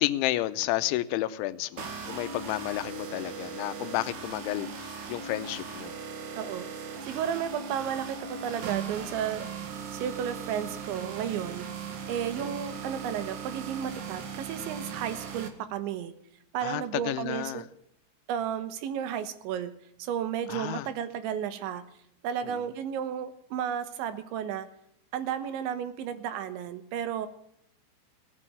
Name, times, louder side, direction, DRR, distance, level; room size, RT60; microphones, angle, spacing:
voice 1, 0.0-5.9 12.4-12.5 16.6-17.6 20.5-20.9 22.5-22.6, left 15 dB, 90° left, 13 dB, 3.1 m, -31 dB
sound 1, 1.8-15.5, right 6 dB, 55° right, 2.4 m, -39 dB
voice 2, 6.3-9.4 9.9-11.7 12.1-16.1 16.5-17.6 18.3-19.7 20.0-21.8 22.2-24.7 25.1-27.3, right 9 dB, 80° right, 11 dB, 3.4 m, -33 dB
17.5 x 7.7 x 9.7 m, 0.73 s
omnidirectional pair, 5.3 m